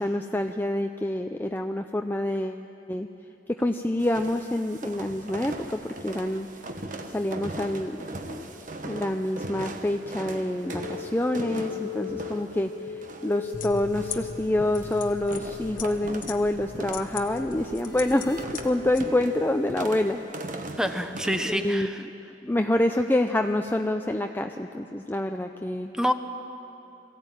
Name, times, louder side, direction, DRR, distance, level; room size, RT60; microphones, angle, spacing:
voice 1, 0.0-3.1 3.6-6.5 7.1-7.9 8.3-8.6 8.8-20.2 20.5-20.7 21.4-21.9 22.4-25.9, left 1 dB, 10° left, 5 dB, 0.5 m, -27 dB
sound 1, 4.0-21.7, right 1 dB, 50° right, 1.3 m, -40 dB
sound 2, 10.6-19.8, left 6 dB, 70° left, 1.3 m, -39 dB
sound 3, 13.5-19.1, left 5 dB, 50° left, 1.1 m, -40 dB
voice 2, 20.8-22.0 26.0-26.1, equal, 5° right, 7 dB, 0.9 m, -26 dB
22.0 x 15.0 x 9.0 m, 2.8 s
head